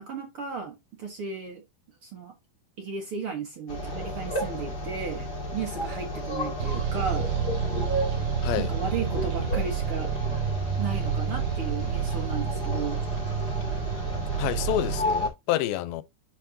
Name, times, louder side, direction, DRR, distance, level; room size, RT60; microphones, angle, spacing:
voice 1, 0.0-1.6 2.0-2.3 2.8-7.3 8.6-10.1 10.8-13.0, right 5 dB, 55° right, 1.6 m, -35 dB
sound 1, 3.7-15.3, left 1 dB, 30° left, 2.2 m, -32 dB
sound 2, 6.6-15.1, right 8 dB, 85° right, 4.1 m, -29 dB
voice 2, 14.4-16.0, left 13 dB, 90° left, 2.5 m, -28 dB
10.5 x 4.6 x 2.7 m
omnidirectional pair, 4.2 m